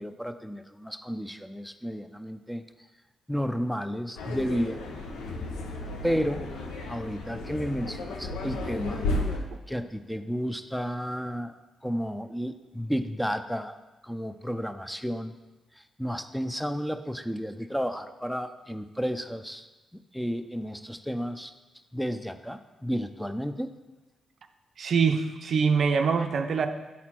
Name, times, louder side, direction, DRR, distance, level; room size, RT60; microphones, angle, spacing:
voice 1, 0.0-2.6 3.3-4.8 6.0-6.6 6.9-9.0 9.3-11.5 11.8-13.8 14.0-15.3 15.7-19.7 19.9-21.5 21.9-23.7, equal, 5° left, 9 dB, 0.5 m, -32 dB
sound 1, 4.2-9.4, left 2 dB, 90° left, 0.7 m, -33 dB
voice 2, 24.8-26.7, right 5 dB, 65° right, 7 dB, 0.5 m, -24 dB
7.1 x 4.2 x 4.4 m, 1.1 s
supercardioid pair, 50°, 0 cm